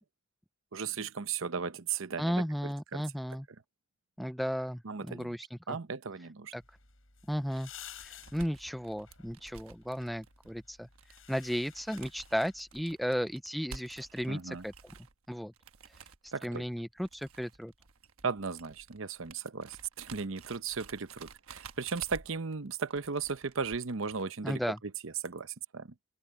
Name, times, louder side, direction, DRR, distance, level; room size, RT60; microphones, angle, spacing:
voice 1, 0.7-2.4 2.9-3.0 4.8-5.4 5.7-6.5 14.3-14.6 16.3-16.6 18.2-24.6 25.0-25.9, right 5 dB, 70° right, 0.8 m, -36 dB
voice 2, 2.2-3.5 4.2-5.8 6.5-6.6 7.3-7.7 8.0-10.9 11.3-14.7 15.3-15.5 16.2-17.7 24.4-24.8, equal, ahead, 0.3 m, -34 dB
sound 1, 6.6-12.8, left 9 dB, 70° left, 7.1 m, -53 dB
sound 2, 7.3-24.2, right 5 dB, 90° right, 1.2 m, -52 dB
open air
head